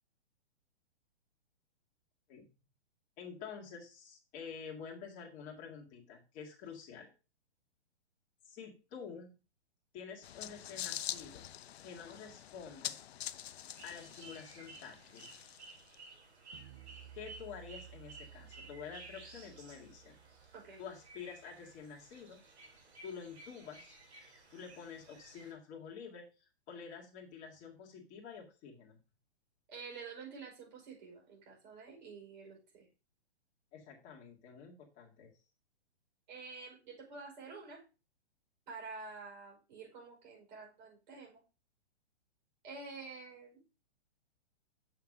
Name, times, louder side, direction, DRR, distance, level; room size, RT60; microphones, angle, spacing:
voice 1, 3.2-7.1 8.5-9.3 9.9-11.5 11.8-13.0 13.8-15.3 17.2-20.2 20.8-22.4 23.0-24.0 24.5-29.0 33.7-35.3, left 6 dB, 20° left, -1 dB, 2.0 m, -49 dB
sound 1, 10.2-15.9, left 11 dB, 65° left, 0.6 m, -45 dB
sound 2, 13.8-25.5, right 3 dB, 70° right, 3.2 m, -55 dB
sound 3, 16.5-21.9, right 10 dB, 20° right, 0.4 m, -56 dB
voice 2, 29.7-32.9 36.3-37.8 38.7-41.4 42.6-43.6, right 4 dB, 40° right, -2 dB, 5.5 m, -49 dB
7.1 x 5.8 x 4.9 m, 0.32 s
hypercardioid pair, 155°, 34 cm